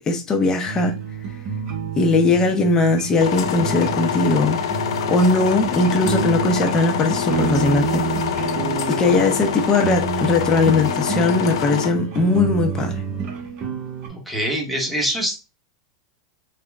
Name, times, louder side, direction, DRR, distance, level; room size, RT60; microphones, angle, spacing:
voice 1, 0.1-1.0 2.0-4.6 5.1-8.1 8.9-13.0, left 3 dB, 25° left, 0.6 m, -19 dB
sound 1, 0.6-14.1, right 5 dB, 40° right, 0.9 m, -28 dB
sound 2, 3.2-11.9, left 9 dB, 80° left, 0.4 m, -26 dB
voice 2, 14.1-15.4, equal, ahead, 1.0 m, -24 dB
3.6 x 2.2 x 2.2 m
supercardioid pair, 130°, 3 cm